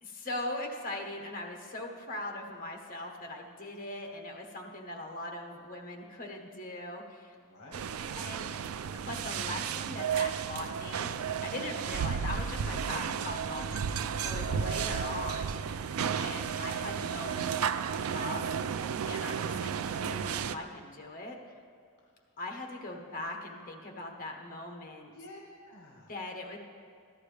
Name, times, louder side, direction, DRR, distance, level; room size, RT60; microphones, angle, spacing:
voice 1, 0.0-7.3 8.1-8.6 8.9-11.1 11.4-13.8 14.2-15.6 16.0-18.5 19.1-21.4 22.4-25.1 26.1-26.6, left 1 dB, 40° left, 2 dB, 1.2 m, -40 dB
voice 2, 7.4-8.1 14.4-14.8 25.0-26.1, left 1 dB, 55° left, -3 dB, 1.4 m, -51 dB
sound 1, 7.7-20.6, right 7 dB, 90° right, 0.4 m, -33 dB
14.5 x 11.0 x 3.4 m, 2.2 s
head